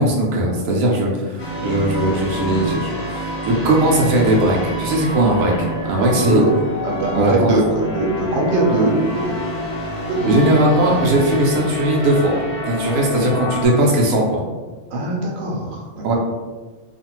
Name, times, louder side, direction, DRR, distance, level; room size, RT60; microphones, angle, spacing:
voice 1, 0.0-5.5 5.8-6.4 7.1-7.5 10.3-12.4 12.7-14.4 16.0-16.1, right 1 dB, 85° right, -2 dB, 1.0 m, -18 dB
sound 1, 1.4-13.7, equal, 50° left, 0.9 m, -27 dB
voice 2, 6.0-9.5 10.1-10.4 14.9-16.1, right 2 dB, 60° right, -3 dB, 0.8 m, -21 dB
2.5 x 2.4 x 2.9 m, 1.3 s
omnidirectional pair, 1.4 m